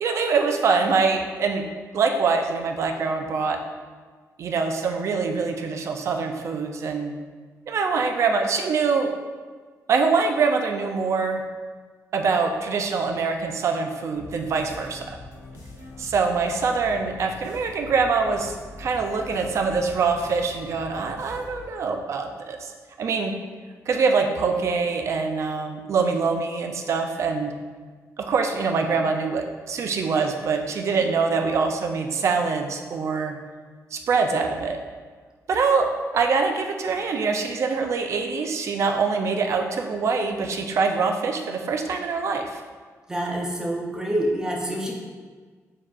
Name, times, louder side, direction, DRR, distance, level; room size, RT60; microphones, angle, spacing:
voice 1, 0.0-1.6 1.9-3.6 4.4-7.1 7.7-9.1 9.9-11.4 12.1-15.0 16.0-22.7 23.0-23.3 23.9-27.5 28.2-33.4 33.9-34.8 35.5-35.9 36.1-42.6, right 4 dB, 55° right, 4 dB, 0.4 m, -24 dB
sound 1, 14.1-21.8, left 2 dB, 90° left, 0.8 m, -43 dB
voice 2, 43.1-44.9, right 1 dB, 10° right, -2 dB, 0.6 m, -26 dB
6.5 x 2.7 x 2.4 m, 1.5 s
wide cardioid pair, 150°, 6 cm